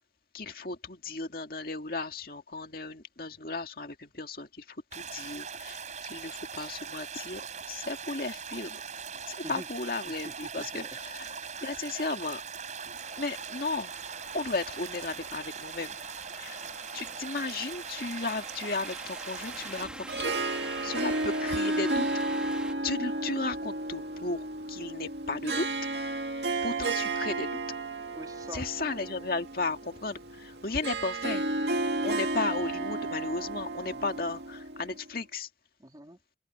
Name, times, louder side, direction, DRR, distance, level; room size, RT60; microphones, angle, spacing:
voice 1, 0.3-8.8 9.3-11.3 11.6-12.4 12.8-13.9 14.3-16.0 16.4-16.7 16.9-20.3 20.8-22.1 22.8-25.7 26.6-27.6 28.5-31.4 32.0-35.5, left 3 dB, 55° left, 2.0 m, -35 dB
sound 1, 4.9-19.9, right 6 dB, 40° right, 7.3 m, -41 dB
voice 2, 10.2-10.9 11.2-11.9 28.1-28.6 33.9-34.1 35.8-36.2, right 1 dB, 20° right, 3.7 m, -45 dB
sound 2, 12.9-22.7, right 1 dB, 5° right, 1.9 m, -47 dB
Harp, 19.8-35.1, right 2 dB, 75° right, 2.2 m, -32 dB
open air
head